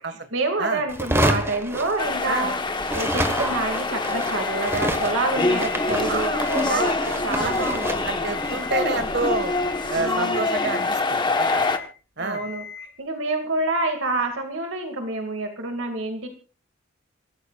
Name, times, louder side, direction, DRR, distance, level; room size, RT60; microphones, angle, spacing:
voice 1, 0.0-8.0 9.9-10.5 12.2-16.3, right 2 dB, 75° right, 4 dB, 2.3 m, -28 dB
sound 1, 0.9-2.5 2.8-10.0, right 1 dB, 10° right, 1.4 m, -29 dB
sound 2, 2.0-11.8, left 3 dB, 20° left, 1.2 m, -25 dB
Alarm, 4.3-4.9 5.3-5.9 6.3-6.9 7.3-7.9 8.3-8.9 9.3-9.9 10.3-10.9 11.3-11.9 12.3-12.9, left 7 dB, 90° left, 5.2 m, -40 dB
voice 2, 6.1-7.5 8.0-9.5 9.9-11.7 12.2-12.4, right 3 dB, 55° right, 9 dB, 1.8 m, -29 dB
26.5 x 14.5 x 2.4 m, 0.36 s
head